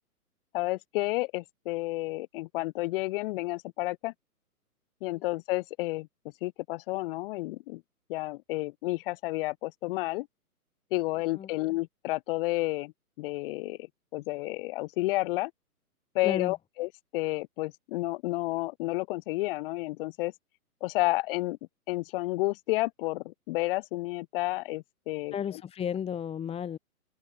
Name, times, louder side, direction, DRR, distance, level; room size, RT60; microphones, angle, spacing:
voice 1, 0.5-4.1 5.0-6.1 6.4-7.8 8.1-10.3 10.9-12.9 13.2-13.8 14.1-15.5 16.1-20.3 20.8-21.6 21.9-25.6, left 20 dB, 35° left, 3.5 m, -31 dB
voice 2, 16.2-16.5 25.3-26.8, left 8 dB, 15° left, 2.3 m, -33 dB
open air
hypercardioid pair, 130°, 45 cm